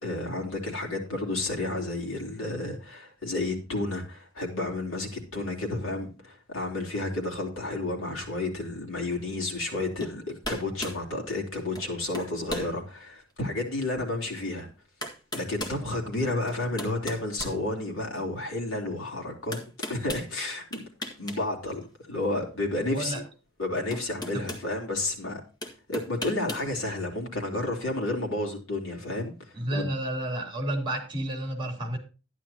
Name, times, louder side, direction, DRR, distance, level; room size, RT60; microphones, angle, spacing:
voice 1, 0.0-14.7 15.3-20.8 21.2-21.8 22.1-23.2 23.6-25.4 25.9-29.9, left 2 dB, 70° left, 3.4 m, -31 dB
sound 1, 10.0-10.2 10.4-11.0 11.7-11.9 12.1-12.7 13.3-13.4 14.5-14.6 15.0-15.8 16.5-18.1 19.5-20.3 20.7-21.4 21.7-21.8 23.3-23.4 23.9-24.7 25.6-26.7, equal, 20° left, 1.8 m, -36 dB
voice 2, 22.9-23.2 24.3-24.4 29.5-32.0, right 1 dB, 25° right, 3.5 m, -31 dB
12.5 x 10.5 x 2.9 m
head